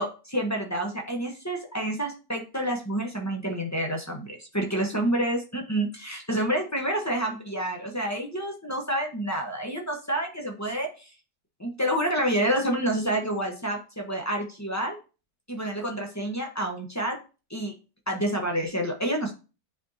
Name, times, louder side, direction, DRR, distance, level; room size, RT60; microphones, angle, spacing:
voice 1, 0.0-11.1 11.6-15.0 15.5-17.2 17.5-17.7 18.1-19.3, right 1 dB, 15° left, 0 dB, 0.7 m, -28 dB
9.3 x 4.4 x 2.8 m, 0.33 s
omnidirectional pair, 1.8 m